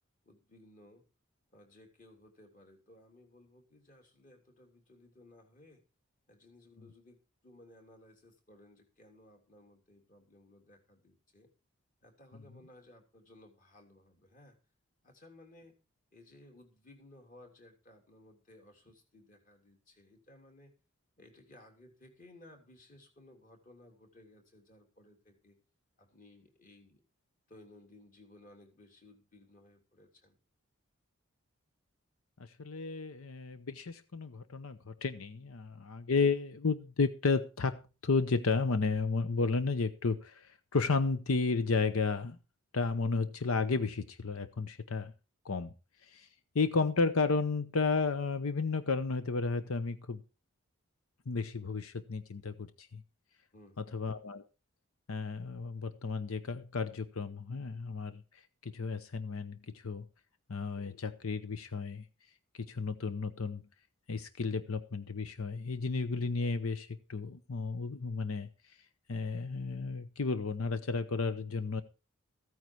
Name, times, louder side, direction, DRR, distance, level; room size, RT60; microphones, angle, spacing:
voice 1, 0.2-1.0 1.5-5.8 6.3-11.5 12.0-14.6 15.0-15.7 16.1-20.7 21.2-25.6 26.0-27.0 27.5-30.3 53.5-54.0, left 1 dB, 40° left, 3.2 m, -59 dB
voice 2, 32.4-42.4 42.7-45.1 45.4-45.7 46.0-46.3 46.5-50.2 51.3-53.0 53.8-54.4 55.1-60.1 60.5-62.0 62.5-63.6 64.1-68.8 69.1-71.8, left 4 dB, 85° left, 0.8 m, -33 dB
15.0 x 9.4 x 4.7 m
head